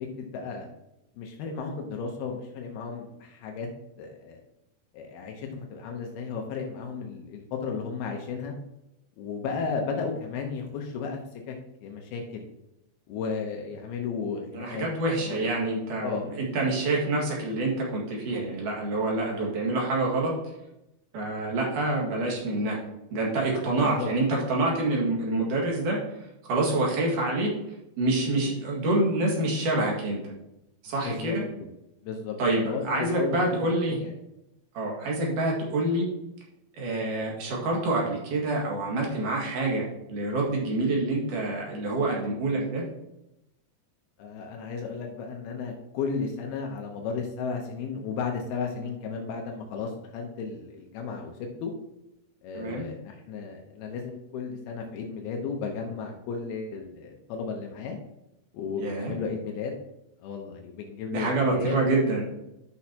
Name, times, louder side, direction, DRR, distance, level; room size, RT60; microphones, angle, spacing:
voice 1, 0.2-0.7 1.2-3.7 4.0-4.4 4.9-8.6 9.2-11.2 11.5-11.6 11.8-12.5 13.1-14.9 15.2-15.6 16.0-16.3 23.8-24.1 31.1-31.4 32.0-32.4 32.6-34.1 44.2-51.7 52.4-58.0 58.5-59.7 60.2-61.8, left 5 dB, 80° left, 2 dB, 2.8 m, -34 dB
voice 2, 14.5-20.3 21.1-22.9 23.1-26.0 26.5-27.5 28.0-30.3 30.8-31.4 32.4-34.0 34.7-36.1 36.7-42.8 52.5-52.8 58.8-59.1 61.1-62.4, right 2 dB, 60° right, -2 dB, 3.2 m, -27 dB
12.0 x 6.2 x 2.8 m, 0.88 s
omnidirectional pair, 4.4 m